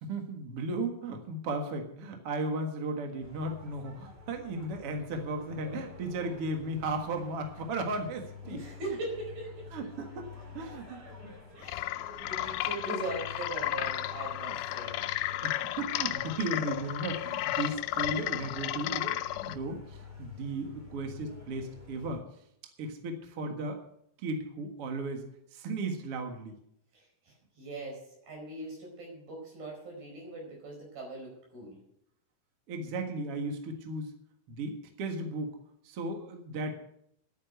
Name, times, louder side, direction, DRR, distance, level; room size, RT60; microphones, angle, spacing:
voice 1, 0.0-8.6 9.7-10.3 10.5-11.3 14.4-14.5 15.4-19.2 19.5-22.2 22.8-23.8 24.2-25.2 25.5-26.6 32.7-34.1 34.5-35.6 35.8-36.7, right 2 dB, 50° right, 4 dB, 2.2 m, -35 dB
sound 1, 3.2-22.2, left 4 dB, 15° right, 3.3 m, -49 dB
voice 2, 8.4-9.7 11.5-11.8 12.2-15.0 26.9-31.8, right 2 dB, 80° right, 0 dB, 6.8 m, -40 dB
sound 2, 11.6-19.6, left 14 dB, 80° left, 1.9 m, -33 dB
11.0 x 9.3 x 8.0 m, 0.74 s
omnidirectional pair, 4.1 m